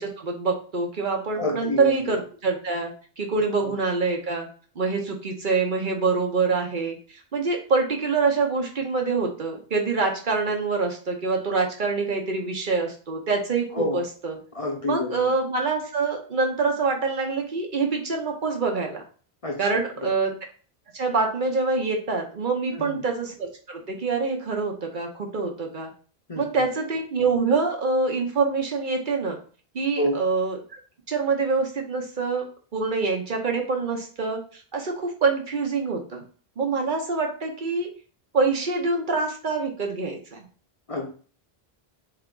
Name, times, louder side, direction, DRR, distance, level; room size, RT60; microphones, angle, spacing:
voice 1, 0.0-2.9 3.2-4.5 4.8-7.0 7.3-14.4 14.9-19.0 19.6-20.3 20.9-25.9 26.4-29.4 29.7-30.6 31.1-32.4 32.7-36.2 36.6-37.9 38.3-40.5, right 4 dB, 55° right, 2 dB, 1.0 m, -25 dB
voice 2, 1.3-2.2 3.6-3.7 13.7-14.0 14.5-15.3 19.4-19.7 20.0-20.1 22.7-23.0 26.3-26.5 30.0-30.2 40.9-41.1, left 1 dB, 40° left, 1 dB, 0.7 m, -28 dB
3.5 x 3.4 x 3.8 m, 0.41 s
omnidirectional pair, 1.0 m